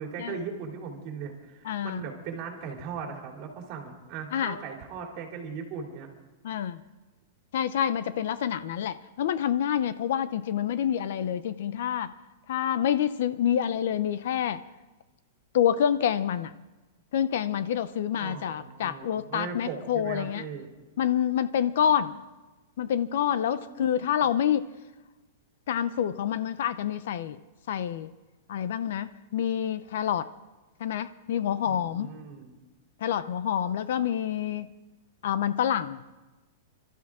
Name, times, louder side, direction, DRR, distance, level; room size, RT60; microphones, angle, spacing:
voice 1, 0.0-6.1 18.2-20.7 23.7-24.0 31.6-32.6, right 6 dB, 30° right, 1 dB, 3.1 m, -38 dB
voice 2, 1.6-2.0 4.3-4.6 6.4-6.8 7.5-12.1 12.5-14.6 15.5-16.5 17.1-20.5 21.0-22.2 22.8-24.7 25.7-27.4 27.7-28.1 28.5-30.3 30.8-32.1 33.0-34.7 35.2-36.0, left 9 dB, 55° left, 14 dB, 0.6 m, -27 dB
26.0 x 13.0 x 3.7 m, 1.1 s
supercardioid pair, 175°, 0 cm